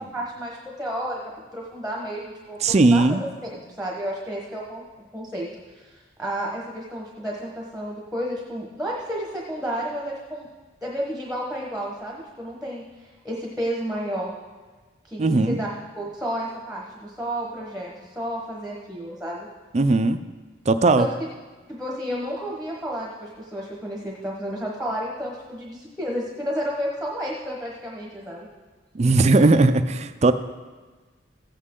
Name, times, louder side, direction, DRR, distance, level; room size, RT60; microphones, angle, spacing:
voice 1, 0.1-1.2 1.5-3.2 3.5-4.8 5.1-5.5 5.7-10.5 10.8-14.3 15.0-15.7 16.0-19.5 21.0-21.1 21.7-28.5, equal, ahead, -3 dB, 1.2 m, -31 dB
voice 2, 2.6-3.2 15.2-15.6 19.7-20.2 20.7-21.1 28.9-30.3, right 3 dB, 35° right, 10 dB, 0.4 m, -18 dB
15.0 x 8.4 x 3.8 m, 1.3 s
head